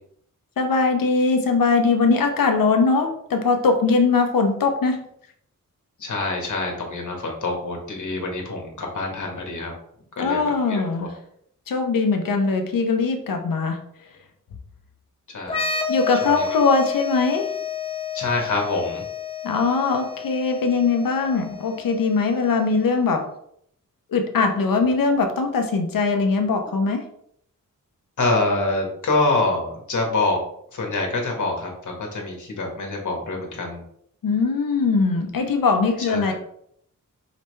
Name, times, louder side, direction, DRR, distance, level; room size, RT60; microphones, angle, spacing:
voice 1, 0.6-5.0 10.2-11.2 11.7-13.8 15.9-17.5 19.4-23.2 24.1-27.0 34.2-36.3, left 4 dB, 85° left, 5 dB, 0.8 m, -21 dB
voice 2, 6.0-9.7 10.2-10.4 10.7-11.1 15.3-15.6 16.2-16.4 18.1-19.0 28.2-30.4 30.7-33.8 36.1-36.3, left 2 dB, 60° left, 0 dB, 1.4 m, -25 dB
sound 1, 15.4-23.0, left 7 dB, 15° left, 0.7 m, -31 dB
4.9 x 3.3 x 3.2 m, 0.69 s
wide cardioid pair, 95°, 33 cm